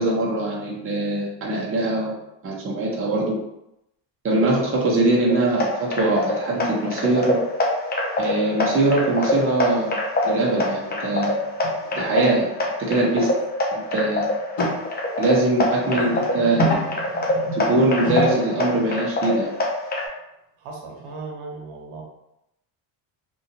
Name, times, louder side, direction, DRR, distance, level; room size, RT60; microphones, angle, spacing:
voice 1, 0.0-2.1 2.4-3.4 4.2-7.4 8.2-10.0 10.2-11.3 11.9-12.5 12.9-13.3 13.7-14.2 15.2-16.6 17.5-19.5, right 2 dB, 25° right, -4 dB, 0.9 m, -22 dB
sound 1, 5.3-20.1, left 1 dB, 20° left, 0.6 m, -25 dB
sound 2, 11.3-11.9 12.1-12.2 13.0-13.1 13.4-13.5 14.6-14.7 16.0-19.0 21.0-21.1, right 1 dB, 70° left, 1.5 m, -29 dB
voice 2, 20.6-22.0, right 3 dB, 80° right, -1 dB, 1.0 m, -37 dB
2.8 x 2.5 x 2.8 m, 0.85 s
cardioid pair, 105°, 49 cm